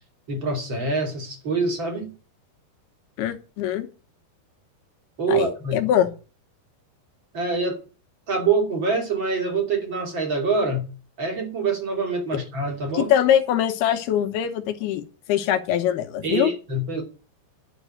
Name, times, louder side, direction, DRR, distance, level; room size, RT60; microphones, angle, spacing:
voice 1, 0.3-2.1 5.2-5.8 7.3-7.8 8.3-10.8 11.2-13.1 16.2-17.0, right 3 dB, 30° right, 3.3 m, -25 dB
voice 2, 3.2-3.9 5.3-6.1 12.9-16.5, left 10 dB, 80° left, 3.0 m, -23 dB
11.0 x 6.1 x 8.8 m
omnidirectional pair, 4.6 m